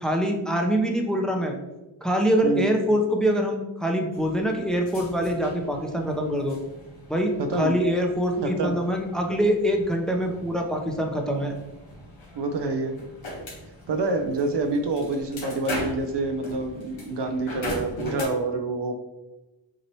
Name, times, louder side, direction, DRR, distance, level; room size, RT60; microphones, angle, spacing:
voice 1, 0.0-1.5 2.0-6.6 7.1-11.5, equal, ahead, 2 dB, 0.8 m, -24 dB
sound 1, 4.1-18.2, left 1 dB, 75° left, 1.5 m, -40 dB
voice 2, 7.4-7.8 8.4-8.8 12.3-13.0 13.9-18.9, right 3 dB, 60° right, 6 dB, 0.7 m, -27 dB
6.1 x 2.9 x 3.0 m, 1.1 s
cardioid pair, 45°, 47 cm